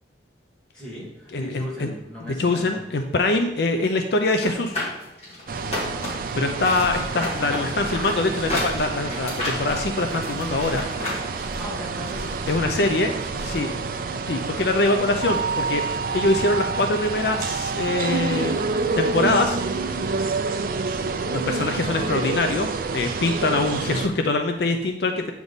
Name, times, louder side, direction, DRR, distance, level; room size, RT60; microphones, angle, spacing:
voice 1, 0.7-2.8 5.5-5.9 11.6-13.0 13.3-14.2 20.3-20.6, equal, 5° left, -7 dB, 1.9 m, -39 dB
voice 2, 1.3-1.9 2.4-4.8 6.4-10.9 12.5-13.1 13.5-13.7 14.3-15.8 16.1-18.6 19.0-19.6 21.5-25.3, left 2 dB, 65° left, 5 dB, 0.5 m, -23 dB
sound 1, 4.3-6.3 6.6-11.2 11.5-11.6, left 1 dB, 35° left, 2.1 m, -31 dB
sound 2, 5.5-24.1, right 4 dB, 50° right, 0.4 m, -28 dB
sound 3, 6.7-7.2 7.7-9.0 9.5-9.9 10.4-10.9 11.3-12.7 13.2-13.7, right 1 dB, 70° right, 1.0 m, -39 dB
8.3 x 3.5 x 3.9 m, 0.87 s
head